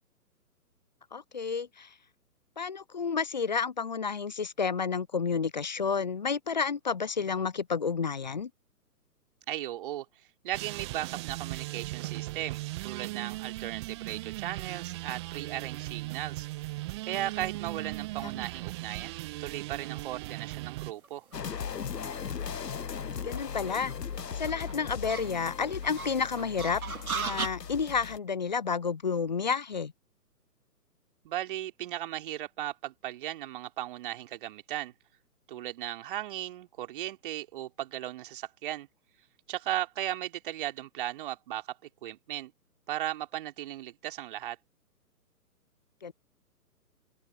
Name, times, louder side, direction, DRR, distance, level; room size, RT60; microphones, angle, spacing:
voice 1, 1.1-1.9 2.6-8.5 18.2-18.3 23.2-23.9 24.4-26.8 27.1-29.9 46.0-46.1, left 5 dB, 30° left, 0.6 m, -30 dB
voice 2, 9.5-16.5 17.1-21.2 31.2-34.9 35.5-38.9 39.5-42.5 42.9-44.6, right 13 dB, 35° right, 3.3 m, -37 dB
sound 1, 10.5-20.9, right 20 dB, 15° right, 1.0 m, -38 dB
sound 2, 13.6-27.5, right 5 dB, 65° right, 2.2 m, -42 dB
sound 3, 21.3-28.2, left 6 dB, 85° left, 0.8 m, -38 dB
open air
figure-of-eight pair, 130°, 47 cm